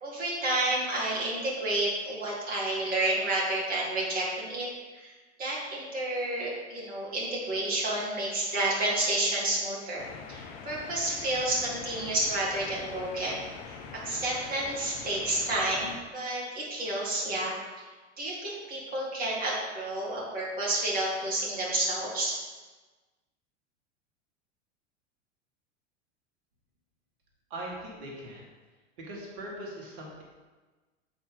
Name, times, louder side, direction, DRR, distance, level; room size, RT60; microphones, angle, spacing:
voice 1, 0.0-4.7 5.0-5.1 5.4-13.8 14.0-17.5 18.2-22.4, right 1 dB, 25° right, -6 dB, 1.9 m, -30 dB
sound 1, 10.0-16.0, left 5 dB, 45° left, 0.9 m, -44 dB
voice 2, 27.5-28.5 29.0-30.2, right 1 dB, 50° right, -2 dB, 2.0 m, -40 dB
7.9 x 4.2 x 4.0 m, 1.3 s
figure-of-eight pair, 85°, 36 cm